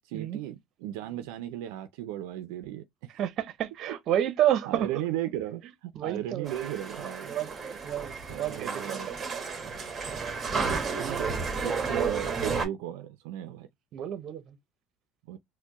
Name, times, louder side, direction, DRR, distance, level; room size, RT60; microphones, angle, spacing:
voice 1, 0.1-3.1 4.7-7.4 8.3-9.1 11.0-11.3 11.6-13.7 15.3-15.4, right 12 dB, 90° right, 0.4 m, -36 dB
voice 2, 3.2-4.9 6.0-6.5 7.2-9.4 11.0-11.2 13.9-14.5, right 11 dB, 55° right, 0.7 m, -30 dB
sound 1, 6.4-12.7, right 5 dB, 25° right, 1.1 m, -32 dB
4.3 x 2.1 x 2.9 m
cardioid pair, 120°, 0 cm